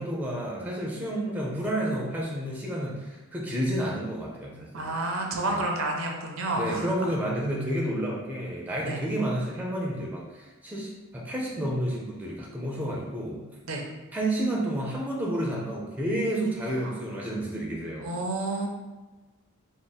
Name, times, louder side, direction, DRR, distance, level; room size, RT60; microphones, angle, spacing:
voice 1, 0.0-4.9 5.5-5.6 6.6-13.4 14.1-18.1, right 1 dB, 10° right, -3 dB, 0.5 m, -30 dB
voice 2, 4.7-6.9 8.9-9.0 13.6-13.9 16.7-16.9 18.0-18.7, right 2 dB, 70° right, 1 dB, 0.6 m, -30 dB
3.6 x 2.1 x 4.0 m, 1.2 s
head